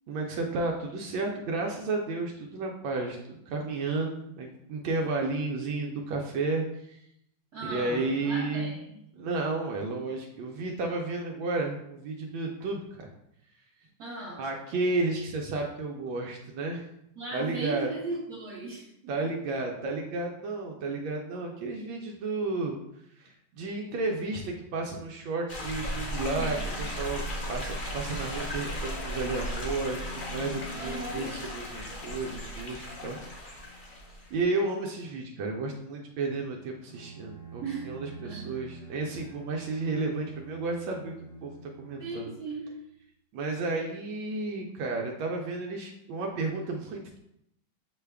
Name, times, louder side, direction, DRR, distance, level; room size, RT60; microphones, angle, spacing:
voice 1, 0.1-7.0 7.6-8.7 9.1-13.1 14.4-16.8 17.3-17.9 19.1-22.8 23.2-33.6 34.3-41.1 41.4-42.3 43.3-47.2, right 3 dB, 85° right, 0 dB, 1.3 m, -32 dB
voice 2, 7.5-8.9 14.0-14.4 17.2-19.1 26.4-26.8 30.7-31.3 37.6-38.6 42.0-42.7, right 3 dB, 55° right, -7 dB, 1.5 m, -37 dB
sound 1, 25.5-34.3, equal, 70° left, 0.5 m, -36 dB
Bowed string instrument, 36.9-42.7, right 4 dB, 45° left, 0.8 m, -47 dB
6.3 x 2.2 x 3.3 m, 0.78 s
omnidirectional pair, 2.1 m